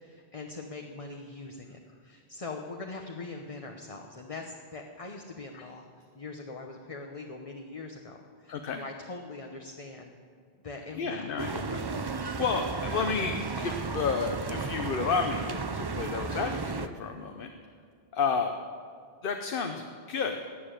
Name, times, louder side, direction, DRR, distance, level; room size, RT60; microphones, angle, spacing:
voice 1, 0.0-5.8 6.1-10.2 10.6-11.3, left 3 dB, 35° left, 2 dB, 1.0 m, -42 dB
voice 2, 8.5-8.8 11.0-17.5 18.1-18.5 19.2-20.4, left 5 dB, 60° left, 5 dB, 1.0 m, -31 dB
sound 1, 11.4-16.9, right 4 dB, 35° right, 0.5 m, -34 dB
18.5 x 6.9 x 9.0 m, 2.2 s
omnidirectional pair, 1.0 m